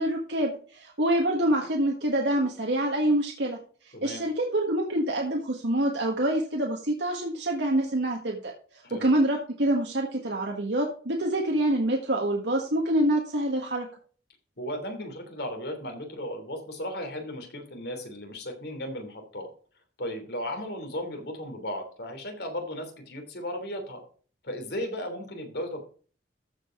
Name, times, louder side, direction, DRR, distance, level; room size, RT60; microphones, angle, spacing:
voice 1, 0.0-3.6 4.0-8.5 8.9-13.9, right 1 dB, 65° right, 0 dB, 1.6 m, -26 dB
voice 2, 14.6-19.5 20.0-24.0 24.4-25.8, left 1 dB, 60° left, 4 dB, 3.1 m, -35 dB
14.0 x 5.2 x 5.0 m, 0.42 s
head